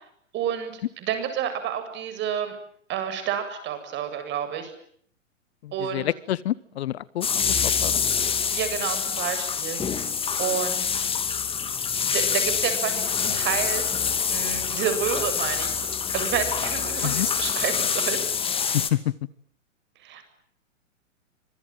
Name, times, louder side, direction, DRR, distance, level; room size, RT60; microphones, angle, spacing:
voice 1, 0.3-0.7 1.0-2.6 2.9-4.7 5.7-6.1 8.5-9.8 10.4-11.1 12.0-13.8 14.3-15.7 16.1-18.2 18.5-18.8 20.0-20.3, right 9 dB, 30° right, 9 dB, 7.9 m, -29 dB
voice 2, 5.6-8.0 17.0-17.3 18.7-19.1, left 13 dB, 55° left, 21 dB, 1.2 m, -28 dB
sound 1, 7.2-18.9, left 6 dB, 15° left, 2.5 m, -26 dB
26.0 x 24.5 x 9.2 m, 0.65 s
hypercardioid pair, 115°, 37 cm